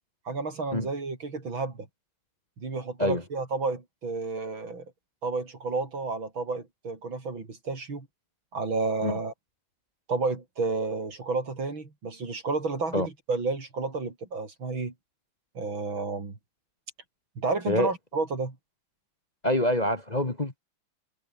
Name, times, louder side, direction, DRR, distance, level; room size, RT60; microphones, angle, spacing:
voice 1, 0.2-1.9 2.6-4.8 5.2-8.1 8.5-9.3 10.1-14.9 15.5-16.4 17.4-18.5, right 3 dB, 75° right, 5.1 m, -31 dB
voice 2, 19.4-20.6, left 1 dB, 20° left, 1.9 m, -26 dB
omnidirectional pair, 2.2 m